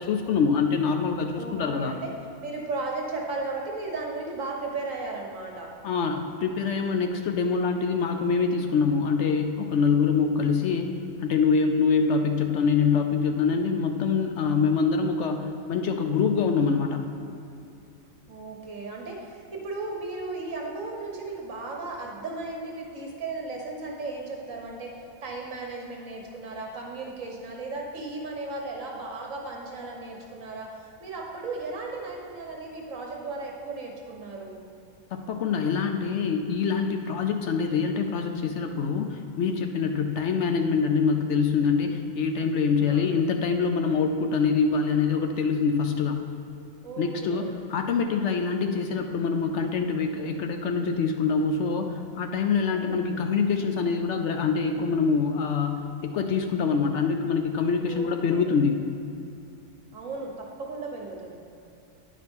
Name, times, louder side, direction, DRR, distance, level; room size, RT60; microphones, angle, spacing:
voice 1, 0.0-2.0 5.8-10.9 11.2-17.0 35.1-46.2 47.0-58.8, left 5 dB, 65° left, 5 dB, 0.8 m, -25 dB
voice 2, 1.3-2.1 2.4-5.7 6.8-7.2 18.3-24.9 25.2-34.6 42.8-43.1 46.8-47.5 52.7-53.0 57.9-58.5 59.9-61.4, right 3 dB, 70° right, 0 dB, 1.5 m, -35 dB
9.4 x 5.0 x 5.2 m, 2.7 s
omnidirectional pair, 1.4 m